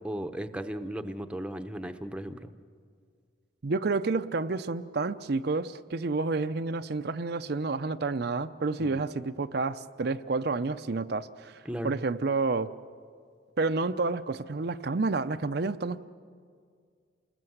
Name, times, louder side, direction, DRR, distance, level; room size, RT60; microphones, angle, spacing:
voice 1, 0.0-2.5 8.8-9.0 11.6-12.0, right 1 dB, 5° right, 8 dB, 0.8 m, -36 dB
voice 2, 3.6-12.7 13.6-16.0, right 3 dB, 60° right, 9 dB, 0.6 m, -30 dB
28.0 x 20.0 x 7.9 m, 2.1 s
head